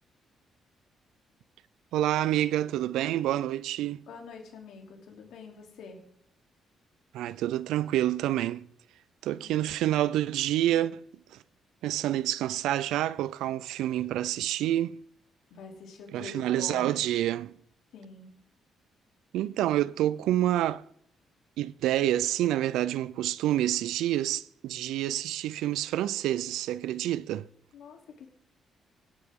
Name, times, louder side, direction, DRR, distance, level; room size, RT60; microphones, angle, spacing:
voice 1, 1.9-4.0 7.1-8.7 9.2-11.0 11.8-15.0 16.1-17.5 19.3-20.8 21.6-27.5, right 13 dB, 90° right, 0.5 m, -28 dB
voice 2, 4.1-6.0 9.3-9.5 15.5-17.0 17.9-18.3 27.7-28.3, left 5 dB, 80° left, 3.2 m, -45 dB
18.0 x 9.7 x 3.7 m
cardioid pair, 90°, 0 cm